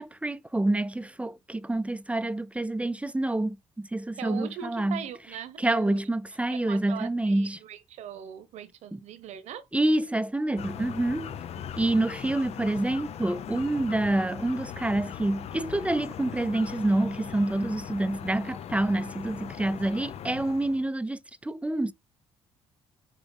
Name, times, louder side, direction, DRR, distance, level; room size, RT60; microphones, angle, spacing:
voice 1, 0.0-5.0 5.6-7.6 8.9-9.0 9.7-11.4 11.8-21.9, right 1 dB, 10° right, 0.5 m, -27 dB
voice 2, 4.2-6.0 6.5-9.6, right 9 dB, 70° right, 1.2 m, -40 dB
sound 1, 10.6-20.9, left 9 dB, 60° left, 0.6 m, -40 dB
7.0 x 4.0 x 3.6 m
supercardioid pair, 60°, 12 cm